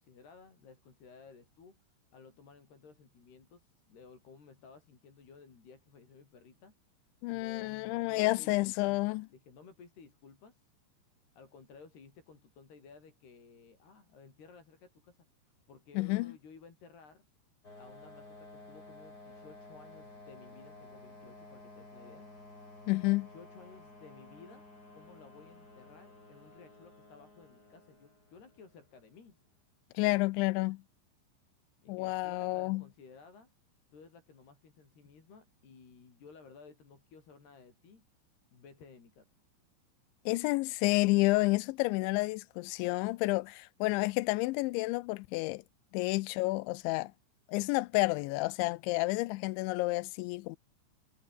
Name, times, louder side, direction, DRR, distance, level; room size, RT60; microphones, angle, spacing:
voice 1, 0.0-1.8 2.1-6.8 7.3-10.7 11.4-17.3 17.8-22.3 23.3-24.7 24.9-29.4 31.8-33.5 33.9-38.1 38.5-39.3, left 5 dB, 60° left, 7.6 m, -56 dB
voice 2, 7.2-9.3 16.0-16.3 22.9-23.3 29.9-30.8 31.9-32.8 40.3-45.6 45.9-47.1 47.5-50.6, left 22 dB, 80° left, 2.9 m, -30 dB
sound 1, 17.6-29.0, left 2 dB, 20° left, 6.9 m, -53 dB
omnidirectional pair, 5.4 m